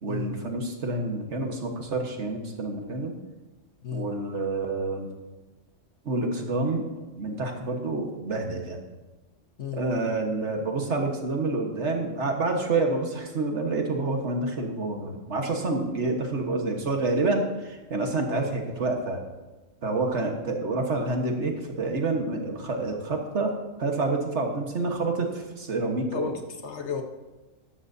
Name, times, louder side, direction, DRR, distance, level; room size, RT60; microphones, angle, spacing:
voice 1, 0.0-3.2 3.9-5.1 6.0-8.8 9.7-19.2 19.8-26.3, right 3 dB, 60° right, 3 dB, 1.6 m, -28 dB
voice 2, 26.1-27.0, left 6 dB, 60° left, 4 dB, 1.3 m, -33 dB
14.0 x 11.5 x 2.7 m, 1.2 s
omnidirectional pair, 1.4 m